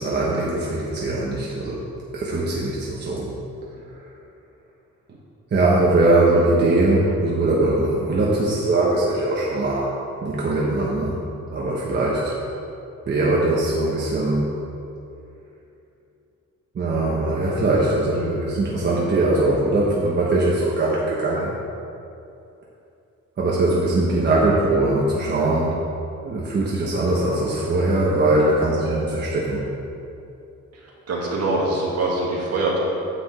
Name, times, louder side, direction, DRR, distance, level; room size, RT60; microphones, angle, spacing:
voice 1, 0.0-1.8 2.1-3.3 3.9-4.1 5.5-9.9 10.2-11.1 11.5-12.4 13.1-14.5 16.7-21.6 23.4-25.8 26.2-29.6, right 2 dB, 35° right, -5 dB, 1.2 m, -21 dB
voice 2, 30.7-32.8, right 2 dB, 60° right, -4 dB, 2.4 m, -24 dB
9.8 x 5.2 x 7.6 m, 2.7 s
wide cardioid pair, 175°, 29 cm